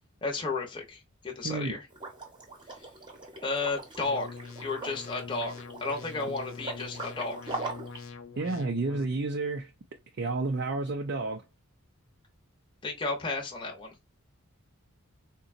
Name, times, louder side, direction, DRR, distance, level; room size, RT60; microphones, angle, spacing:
voice 1, 0.2-1.9 3.4-4.3 4.6-5.5 5.8-7.4 12.8-13.9, left 3 dB, 25° left, 0.7 m, -33 dB
voice 2, 1.4-1.8 8.4-9.7 10.2-11.4, right 3 dB, 55° right, 0.5 m, -30 dB
Liquid, 1.9-8.0, right 2 dB, 20° right, 0.9 m, -41 dB
sound 1, 4.0-9.0, left 4 dB, 65° left, 0.5 m, -44 dB
3.9 x 2.2 x 2.5 m
head